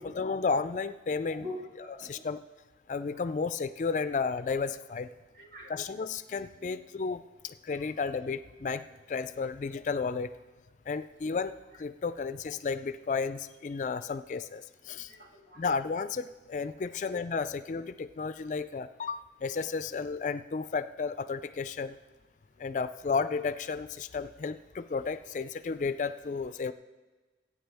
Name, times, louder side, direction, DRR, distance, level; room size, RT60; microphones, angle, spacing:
voice 1, 0.0-1.5 2.0-2.4 2.9-5.1 5.7-10.3 10.9-15.1 15.6-22.0 22.6-26.7, left 5 dB, 45° left, 13 dB, 0.3 m, -33 dB
voice 2, 1.4-2.3 3.1-3.3 5.3-5.9 7.7-7.9 14.0-14.1 15.1-15.6 16.8-17.0, left 1 dB, 50° right, 0 dB, 1.7 m, -45 dB
21.0 x 8.5 x 3.4 m, 1.3 s
head